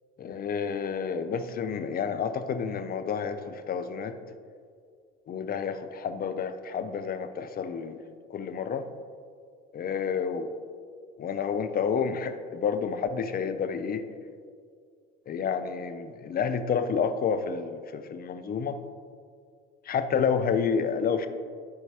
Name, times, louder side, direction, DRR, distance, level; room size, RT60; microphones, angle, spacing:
voice 1, 0.2-4.2 5.3-8.0 8.3-8.8 9.7-10.5 11.2-14.0 15.3-18.8 19.8-21.3, left 6 dB, 30° left, 9 dB, 0.5 m, -29 dB
9.5 x 4.5 x 2.9 m, 2.2 s
hypercardioid pair, 65°, 30 cm